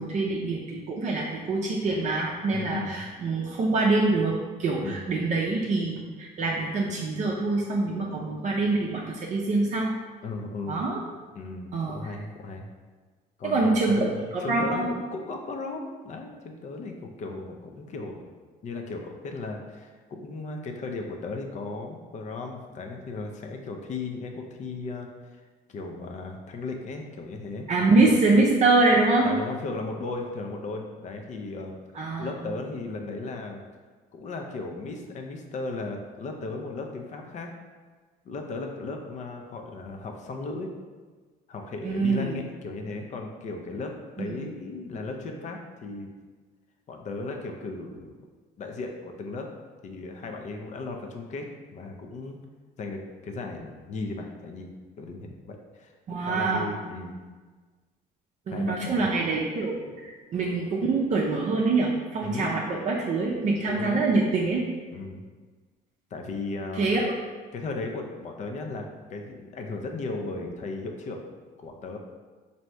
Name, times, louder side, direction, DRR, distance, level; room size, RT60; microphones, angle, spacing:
voice 1, 0.0-9.9 10.7-11.0 11.7-12.0 13.4-14.9 27.7-29.3 32.0-32.3 41.8-42.3 44.2-44.3 56.1-56.7 58.5-64.6 66.8-67.0, right 3 dB, 45° right, -2 dB, 0.5 m, -25 dB
voice 2, 2.5-3.1 4.8-5.0 10.2-10.8 11.3-12.7 13.4-18.3 18.6-25.4 25.7-28.2 29.2-31.7 32.2-33.6 34.1-37.5 38.2-40.7 41.5-46.1 46.9-48.2 48.6-49.5 49.8-52.4 52.8-54.7 55.0-55.9 56.2-57.2 58.5-59.1 62.2-62.5 63.7-64.0 64.9-65.2 66.1-67.0 67.5-71.2 71.6-72.0, left 3 dB, 45° left, 3 dB, 0.5 m, -36 dB
3.1 x 2.7 x 4.5 m, 1.4 s
cardioid pair, 110°, 17 cm